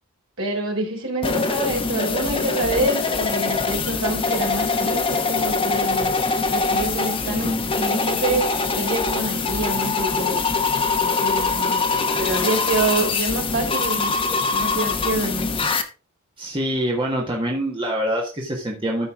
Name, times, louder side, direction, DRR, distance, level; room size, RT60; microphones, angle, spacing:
voice 1, 0.4-6.1 6.5-10.5 11.0-11.8 12.2-14.1 14.5-15.5, right 2 dB, 60° right, 0 dB, 3.7 m, -26 dB
sound 1, 1.2-15.8, left 4 dB, 25° left, 0.9 m, -23 dB
voice 2, 16.4-19.1, right 1 dB, 20° right, -1 dB, 1.6 m, -25 dB
13.0 x 5.4 x 3.7 m, 0.32 s
head